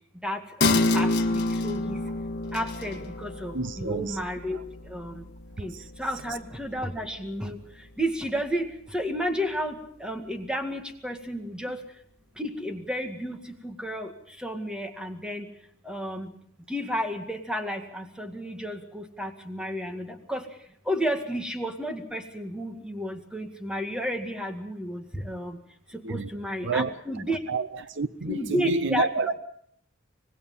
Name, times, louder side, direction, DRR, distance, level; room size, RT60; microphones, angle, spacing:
voice 1, 0.2-2.0 2.5-4.6 4.8-5.2 5.6-7.6 8.0-11.8 12.4-14.1 14.4-15.5 15.8-16.3 16.7-20.5 20.9-25.6 25.9-27.4 28.3-29.3, equal, 5° right, 2.0 m, -32 dB
sound 1, 0.6-7.6 8.0-8.1, left 2 dB, 60° left, 1.6 m, -29 dB
voice 2, 3.5-4.2 4.5-4.6 5.6-5.8 26.0-26.3 26.6-26.9 27.5-29.4, right 4 dB, 65° right, 0.7 m, -29 dB
25.5 x 19.5 x 5.6 m
head